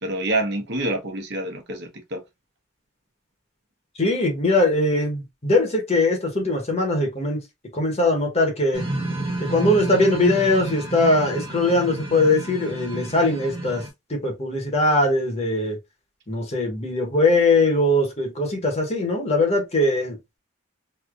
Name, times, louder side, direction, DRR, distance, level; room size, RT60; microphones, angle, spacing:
voice 1, 0.0-2.2, right 2 dB, 60° right, 1.0 m, -27 dB
voice 2, 4.0-7.4 7.7-8.8 9.4-13.8 14.1-15.8 16.3-20.2, left 2 dB, 35° left, 1.0 m, -21 dB
sound 1, 8.7-13.9, right 2 dB, 25° right, 1.1 m, -30 dB
3.2 x 2.8 x 2.4 m
head